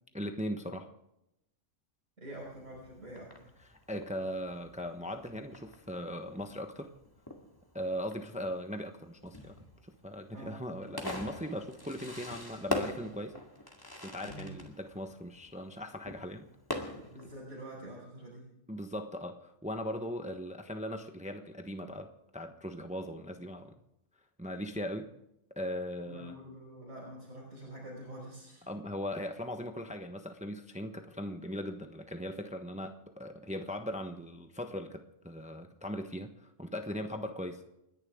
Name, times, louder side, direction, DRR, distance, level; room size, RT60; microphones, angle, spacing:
voice 1, 0.1-0.9 3.6-6.9 7.7-9.6 9.8-13.3 13.9-16.5 16.8-17.0 18.7-23.8 24.4-25.1 25.6-26.3 28.7-37.7, equal, 5° right, 6 dB, 1.0 m, -39 dB
voice 2, 2.2-3.5 10.3-10.6 14.3-14.5 16.9-18.5 26.1-28.7, right 1 dB, 80° right, -6 dB, 5.8 m, -46 dB
Fireworks, 2.3-17.4, left 1 dB, 15° left, 2.1 m, -43 dB
30.0 x 10.5 x 3.7 m, 0.83 s
omnidirectional pair, 1.3 m